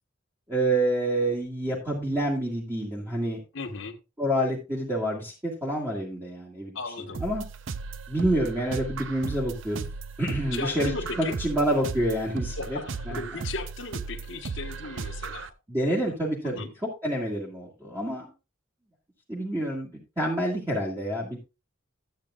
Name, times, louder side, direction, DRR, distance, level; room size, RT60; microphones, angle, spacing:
voice 1, 0.5-3.4 4.2-6.8 7.2-7.4 8.1-9.8 10.2-12.8 13.1-13.2 15.7-18.3 19.3-21.4, right 1 dB, 15° right, 2.0 m, -28 dB
voice 2, 3.5-4.0 6.7-7.2 10.5-11.4 12.6-15.5 15.8-16.1 16.4-16.7, left 3 dB, 65° left, 1.4 m, -36 dB
sound 1, 7.1-15.5, right 4 dB, 65° right, 0.6 m, -36 dB
13.5 x 8.6 x 2.5 m
head